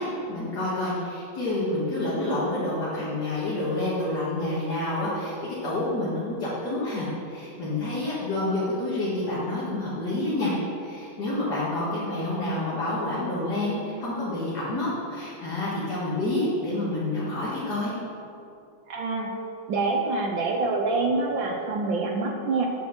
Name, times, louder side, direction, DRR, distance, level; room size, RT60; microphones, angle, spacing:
voice 1, 0.0-10.5 10.8-17.9, left 2 dB, 55° left, -9 dB, 2.5 m, -28 dB
voice 2, 18.9-19.3 19.7-22.7, right 3 dB, 70° right, 1 dB, 1.5 m, -26 dB
8.7 x 6.2 x 7.7 m, 2.7 s
omnidirectional pair, 2.2 m